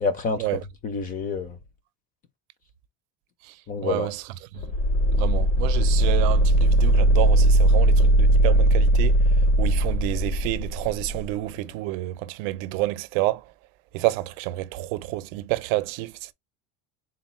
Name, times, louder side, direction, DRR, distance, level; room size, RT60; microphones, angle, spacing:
voice 1, 0.0-1.6 3.7-4.1, left 4 dB, 25° left, 0.4 m, -28 dB
voice 2, 3.8-4.2 5.1-9.2 9.6-13.4 13.9-16.3, right 17 dB, 80° right, 0.6 m, -29 dB
sound 1, 4.6-11.2, right 1 dB, 75° left, 1.1 m, -19 dB
4.0 x 2.1 x 4.2 m
cardioid pair, 180°, 38 cm